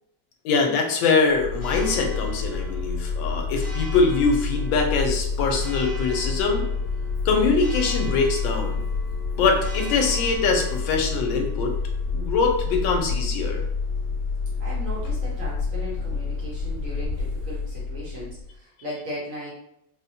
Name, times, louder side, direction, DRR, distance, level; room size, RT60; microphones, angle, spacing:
voice 1, 0.4-6.7 7.2-8.8 9.4-11.7 12.1-13.6, left 4 dB, 85° left, 2 dB, 1.3 m, -23 dB
Church bell, 1.3-18.5, left 4 dB, 35° left, 1.3 m, -28 dB
voice 2, 14.6-19.5, equal, 55° right, -6 dB, 1.0 m, -37 dB
3.9 x 2.1 x 2.7 m, 0.80 s
omnidirectional pair, 2.1 m